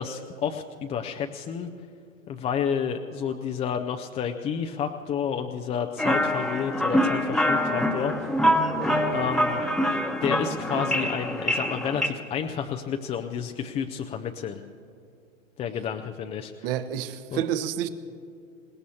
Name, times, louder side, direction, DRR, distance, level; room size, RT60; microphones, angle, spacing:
voice 1, 0.0-1.7 2.3-8.3 9.1-9.7 10.2-14.6 15.6-16.5 17.3-17.4, left 7 dB, 15° left, 5 dB, 0.5 m, -30 dB
sound 1, 6.0-12.1, equal, ahead, 1.1 m, -25 dB
voice 2, 16.6-17.9, right 10 dB, 45° right, 11 dB, 1.2 m, -29 dB
27.5 x 17.5 x 2.9 m, 2.4 s
figure-of-eight pair, 105°, 39 cm